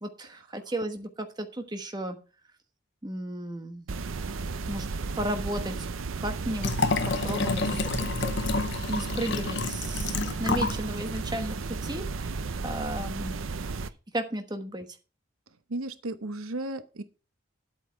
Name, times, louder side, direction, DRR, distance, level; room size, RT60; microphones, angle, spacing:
voice 1, 0.0-2.2 3.0-3.9 4.7-4.9 5.2-5.9 6.2-6.7 7.0-7.8 8.2-8.3 8.9-12.3 12.6-13.4 14.1-14.9, right 1 dB, 20° right, 6 dB, 1.1 m, -34 dB
sound 1, 3.9-13.9, right 4 dB, 75° right, 0.6 m, -34 dB
Liquid, 6.6-10.8 11.2-11.3, left 4 dB, 55° left, 0.7 m, -29 dB
voice 2, 15.7-17.0, right 2 dB, 90° right, 10 dB, 1.0 m, -34 dB
10.0 x 8.4 x 4.5 m, 0.34 s
head